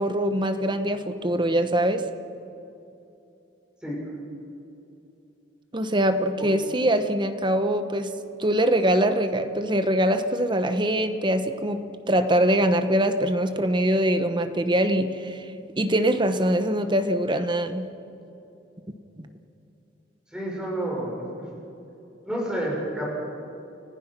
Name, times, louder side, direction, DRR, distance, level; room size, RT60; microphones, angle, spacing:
voice 1, 0.0-2.0 5.7-8.1 8.4-15.5 15.8-17.9 19.2-19.3, right 1 dB, 25° right, 9 dB, 1.1 m, -23 dB
voice 2, 20.3-21.2 22.2-23.1, right 1 dB, 5° right, -4 dB, 6.2 m, -29 dB
30.0 x 15.0 x 6.1 m, 2.8 s
head